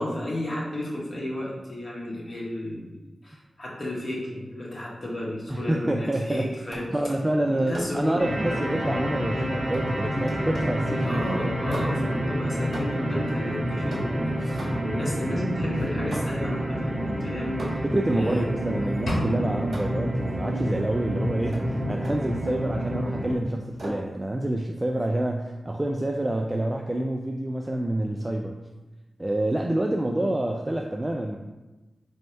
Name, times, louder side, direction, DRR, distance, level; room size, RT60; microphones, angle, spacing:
voice 1, 0.0-7.1 7.4-8.8 11.0-17.8 18.1-18.4 30.2-30.3, left 1 dB, 45° left, -4 dB, 1.2 m, -33 dB
voice 2, 5.5-6.5 6.9-11.2 17.8-28.5 29.2-31.4, right 1 dB, 25° right, 1 dB, 0.3 m, -27 dB
sound 1, 6.7-7.1 7.7-8.1 9.7-10.9 11.7-12.2 12.7-13.2 13.9-15.1 16.1-16.6 17.6-18.1 19.1-20.1 21.5-21.7 22.0-22.7 23.8-24.1, right 1 dB, 60° right, 1.3 m, -38 dB
sound 2, 8.2-23.3, equal, 40° right, 1.0 m, -28 dB
sound 3, 19.1-21.0, equal, 70° left, 0.9 m, -32 dB
3.1 x 2.8 x 4.5 m, 1.1 s
cardioid pair, 50°, 0 cm